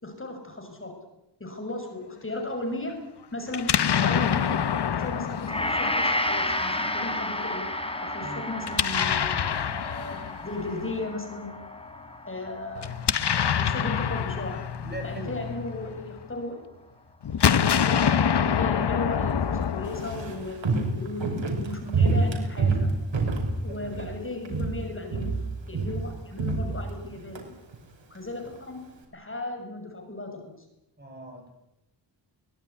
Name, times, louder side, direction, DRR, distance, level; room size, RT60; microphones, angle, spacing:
voice 1, 0.0-1.0 1.4-3.0 3.3-4.6 4.9-7.7 8.0-10.2 10.4-11.5 12.3-12.9 13.3-14.6 15.0-16.6 17.6-22.9 23.6-25.4 25.7-27.4 28.1-30.4, left 2 dB, 30° left, 3 dB, 6.8 m, -36 dB
Explosion, 3.5-6.6 8.6-10.9 12.8-16.2 17.2-20.6, left 8 dB, 65° left, 1.0 m, -26 dB
Gong, 5.5-13.9 14.2-14.4, left 1 dB, 10° left, 3.8 m, -31 dB
voice 2, 14.8-15.4 23.7-24.0 31.0-31.5, right 1 dB, 25° right, 4 dB, 6.1 m, -40 dB
Walk footsteps, 19.9-24.2 24.4-24.8 25.1-27.4 27.7-27.8, right 3 dB, 90° right, 5.9 m, -27 dB
23.0 x 20.0 x 9.9 m, 0.87 s
wide cardioid pair, 120°, 44 cm